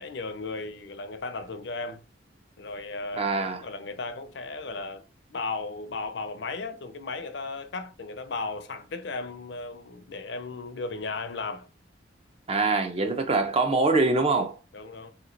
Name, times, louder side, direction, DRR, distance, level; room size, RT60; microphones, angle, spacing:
voice 1, 0.0-2.0 2.6-5.0 5.3-11.7 13.2-13.4 14.7-15.1, left 3 dB, 65° left, 0.6 m, -35 dB
voice 2, 3.1-3.6 12.5-14.6, right 3 dB, 30° right, 0.6 m, -24 dB
3.5 x 3.0 x 3.8 m
head